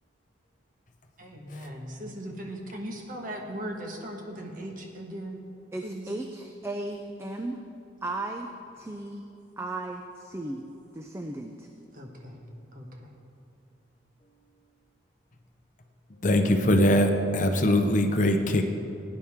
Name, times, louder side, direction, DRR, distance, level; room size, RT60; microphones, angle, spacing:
voice 1, 1.2-5.4 5.8-6.1 11.9-12.4 12.7-13.1, right 1 dB, 45° right, 1 dB, 1.4 m, -38 dB
voice 2, 5.7-7.6 8.0-8.5 8.8-9.3 9.6-10.6 10.9-11.7, right 2 dB, 15° right, 4 dB, 0.4 m, -35 dB
voice 3, 16.2-18.6, left 1 dB, 40° left, 5 dB, 0.7 m, -22 dB
17.5 x 9.9 x 3.6 m, 2.7 s
head